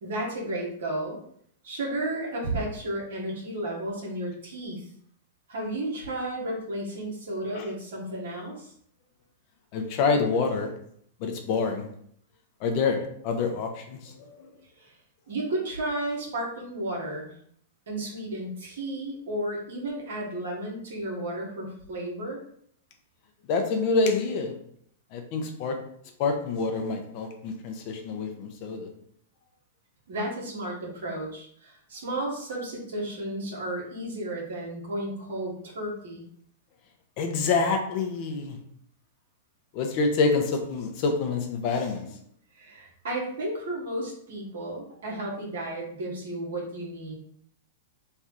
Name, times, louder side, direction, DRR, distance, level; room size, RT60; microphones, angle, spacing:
voice 1, 0.0-1.2 1.6-4.8 5.5-8.7 14.8-14.9 15.3-17.3 17.9-22.4 30.1-36.2 42.6-47.1, right 1 dB, 75° right, -2 dB, 1.4 m, -33 dB
voice 2, 9.7-10.7 11.2-11.9 12.6-14.5 23.5-24.5 25.1-25.8 26.2-28.9 37.2-38.6 39.7-42.1, left 4 dB, 50° left, 4 dB, 0.8 m, -27 dB
3.3 x 2.3 x 4.4 m, 0.65 s
hypercardioid pair, 115°, 0 cm